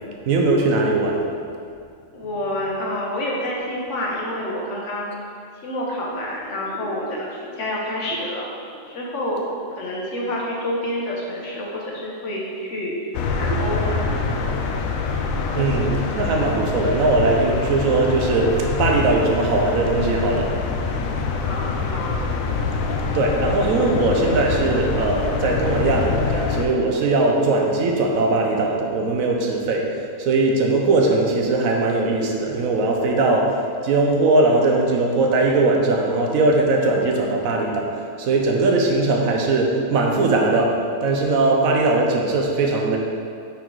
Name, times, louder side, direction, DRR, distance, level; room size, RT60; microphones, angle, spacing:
voice 1, 0.3-1.3 15.5-20.5 23.1-33.6 33.8-37.9 38.2-43.0, right 2 dB, 85° right, 1 dB, 1.2 m, -20 dB
voice 2, 2.1-5.1 5.6-8.5 8.9-9.4 9.8-13.0 13.3-14.1 21.4-22.2, left 1 dB, 65° left, -3 dB, 1.3 m, -28 dB
sound 1, 13.1-26.7, left 4 dB, 85° left, 1.0 m, -25 dB
5.5 x 4.7 x 3.8 m, 2.3 s
omnidirectional pair, 1.4 m